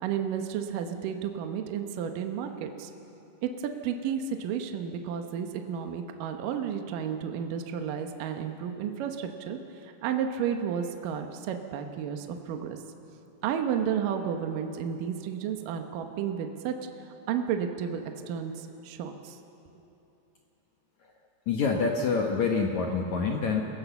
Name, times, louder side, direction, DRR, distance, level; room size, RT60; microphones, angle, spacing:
voice 1, 0.0-2.9 3.4-12.8 13.4-16.8 17.3-19.4, right 8 dB, 70° right, 5 dB, 2.1 m, -32 dB
voice 2, 21.5-23.6, left 5 dB, 75° left, 1 dB, 1.7 m, -26 dB
29.5 x 17.5 x 7.1 m, 3.0 s
omnidirectional pair, 5.2 m